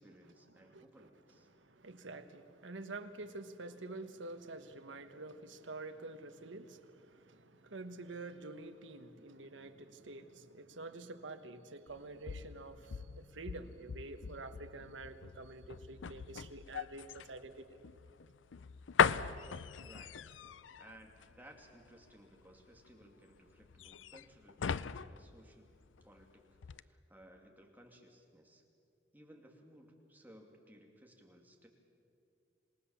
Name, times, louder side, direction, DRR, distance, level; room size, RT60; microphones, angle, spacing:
voice 1, 0.0-1.5 19.8-20.2 20.8-25.7 26.0-28.6 29.1-31.7, right 1 dB, 10° right, 2.6 m, -59 dB
voice 2, 0.6-1.1 1.5-17.7, right 2 dB, 80° right, 1.3 m, -48 dB
sound 1, 11.9-26.2 26.6-26.8, left 7 dB, 80° left, 0.5 m, -39 dB
27.5 x 18.5 x 7.2 m
head